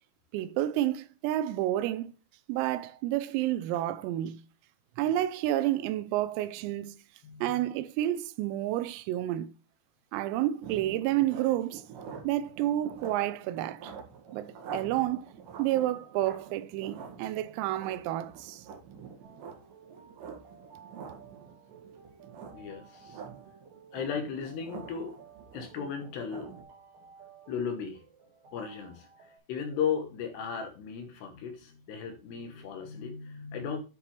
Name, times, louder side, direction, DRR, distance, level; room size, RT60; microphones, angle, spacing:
voice 1, 0.3-2.1 2.5-4.4 5.0-7.0 7.4-9.5 10.1-11.8 12.2-13.9 14.3-15.3 15.6-18.6, right 13 dB, 90° right, 3.5 m, -30 dB
voice 2, 7.2-7.7 22.5-23.2 23.9-25.2 25.5-26.5 27.5-28.0 28.5-33.8, left 7 dB, 70° left, 2.7 m, -36 dB
sound 1, 10.6-26.6, right 6 dB, 60° right, 3.8 m, -46 dB
sound 2, 19.2-29.4, right 6 dB, 45° right, 5.0 m, -55 dB
9.8 x 6.9 x 3.2 m
omnidirectional pair, 6.0 m